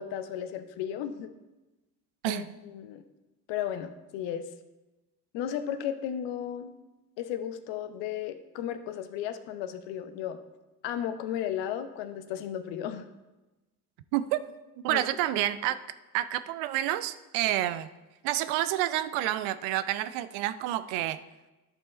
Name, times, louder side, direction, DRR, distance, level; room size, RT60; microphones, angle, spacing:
voice 1, 0.0-1.3 2.2-3.0 3.5-4.4 5.3-6.7 7.2-10.4 10.8-13.1 14.9-15.0, left 10 dB, 65° left, 9 dB, 0.9 m, -34 dB
voice 2, 2.2-2.5 14.1-14.4 14.8-15.8 16.1-17.9 18.2-21.2, right 13 dB, 65° right, 13 dB, 0.6 m, -29 dB
11.5 x 5.3 x 4.2 m, 1.1 s
hypercardioid pair, 50°, 48 cm